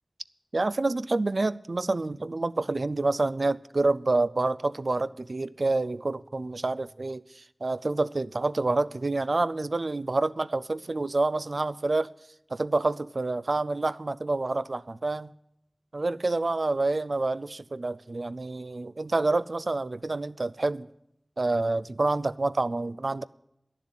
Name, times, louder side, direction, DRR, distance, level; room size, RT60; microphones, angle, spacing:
voice 1, 0.5-12.1 12.5-15.3 15.9-20.9 21.4-23.2, right 2 dB, 75° right, 0.4 m, -28 dB
11.0 x 7.2 x 9.8 m
wide cardioid pair, 45°, 0 cm